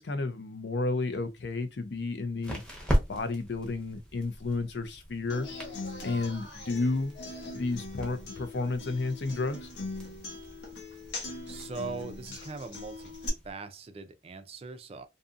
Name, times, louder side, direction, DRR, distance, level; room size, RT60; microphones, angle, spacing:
voice 1, 0.0-2.6 3.1-5.5 6.0-7.1 7.5-9.7, left 3 dB, 70° left, 0.5 m, -32 dB
sound 1, 1.1-13.5, equal, 5° left, 0.8 m, -39 dB
Human voice / Acoustic guitar, 5.3-13.3, left 3 dB, 90° left, 0.9 m, -41 dB
voice 2, 11.5-13.1 13.4-15.0, right 4 dB, 35° right, 0.4 m, -41 dB
2.6 x 2.6 x 2.4 m
head